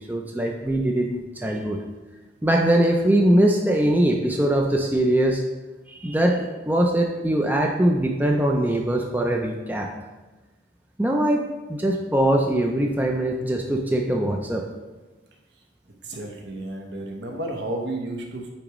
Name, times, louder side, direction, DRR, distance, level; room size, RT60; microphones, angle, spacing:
voice 1, 0.1-1.8 2.4-5.4 5.9-9.9 11.0-11.4 11.7-14.6, right 1 dB, 10° right, 1 dB, 0.4 m, -22 dB
voice 2, 16.0-18.5, right 1 dB, 65° right, 1 dB, 1.0 m, -32 dB
8.6 x 4.9 x 3.1 m, 1.2 s
head